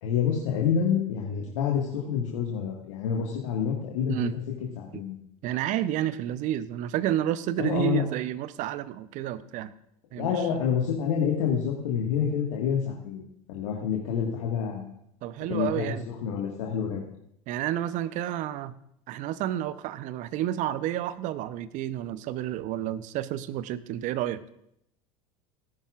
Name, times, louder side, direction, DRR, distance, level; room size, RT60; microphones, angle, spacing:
voice 1, 0.0-4.2 4.8-5.2 7.6-8.0 10.1-14.9 15.5-17.0, left 7 dB, 65° left, -2 dB, 1.8 m, -28 dB
voice 2, 5.4-9.7 10.1-10.5 15.2-16.1 17.5-18.7 19.1-24.4, right 12 dB, 45° right, 15 dB, 0.7 m, -30 dB
18.0 x 10.5 x 2.5 m, 0.75 s
figure-of-eight pair, 80°, 18 cm